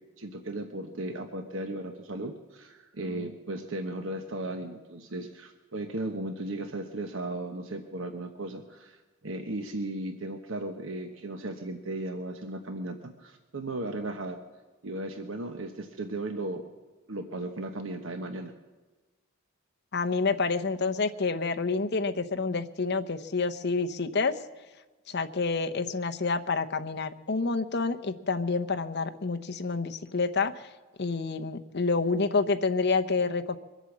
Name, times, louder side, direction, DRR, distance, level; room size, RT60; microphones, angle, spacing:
voice 1, 0.2-14.4 14.8-16.7 17.1-18.5, right 2 dB, 65° right, 6 dB, 1.1 m, -36 dB
voice 2, 19.9-24.4 25.1-30.7 31.0-33.6, left 4 dB, 55° left, 7 dB, 0.8 m, -28 dB
23.0 x 8.2 x 7.3 m, 1.3 s
head